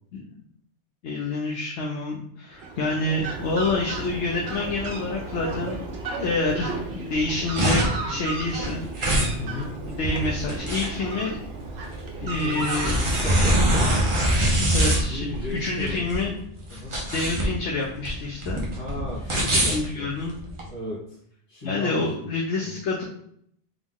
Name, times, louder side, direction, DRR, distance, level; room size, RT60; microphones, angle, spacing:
voice 1, 1.0-5.8 6.1-8.8 9.8-11.4 12.2-13.0 14.7-16.3 17.1-18.6 19.7-20.4 21.6-23.0, left 2 dB, 80° left, -2 dB, 1.0 m, -28 dB
Fowl, 2.5-15.5, right 3 dB, 65° right, 1.0 m, -35 dB
sound 1, 7.2-20.7, right 1 dB, 30° right, 0.8 m, -24 dB
voice 2, 9.4-9.8 12.2-13.9 14.8-16.1 16.7-17.0 18.8-20.1 20.7-21.2 21.5-22.3 22.6-22.8, left 2 dB, 35° left, -8 dB, 1.2 m, -35 dB
3.7 x 3.0 x 3.7 m, 0.68 s
omnidirectional pair, 1.2 m